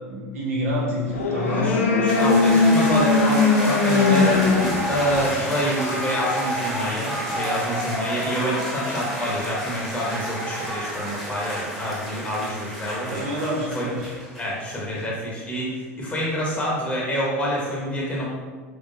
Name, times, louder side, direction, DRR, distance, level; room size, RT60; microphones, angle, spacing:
voice 1, 0.0-1.7 13.1-14.1, equal, 70° right, -4 dB, 1.0 m, -27 dB
sound 1, 1.1-6.3, left 3 dB, 70° left, 0.4 m, -20 dB
Singing, 1.1-12.1, right 1 dB, 25° right, 1.4 m, -34 dB
voice 2, 1.5-13.2 13.7-13.9 14.4-18.2, equal, 15° left, -4 dB, 1.0 m, -27 dB
sound 2, 2.1-14.8, equal, ahead, 1.1 m, -32 dB
3.6 x 3.1 x 2.7 m, 1.5 s
figure-of-eight pair, 80°, 8 cm